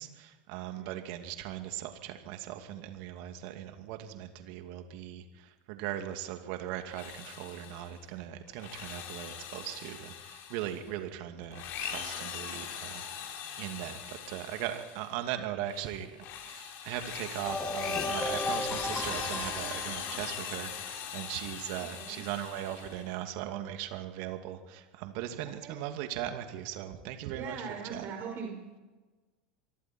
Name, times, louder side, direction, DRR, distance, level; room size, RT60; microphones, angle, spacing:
voice 1, 0.0-16.1 16.4-28.0, right 11 dB, 60° right, 6 dB, 2.6 m, -39 dB
voice 2, 0.7-1.0 21.6-22.2 25.4-25.8 27.3-28.5, right 6 dB, 45° right, 1 dB, 5.5 m, -41 dB
Drill, 6.8-8.0 8.5-10.9 11.4-15.1 15.6-23.1, left 8 dB, 50° left, 5.4 m, -40 dB
sound 1, 17.4-20.5, left 2 dB, 10° left, 3.1 m, -35 dB
27.0 x 23.5 x 4.6 m, 1.2 s
hypercardioid pair, 90°, 5 cm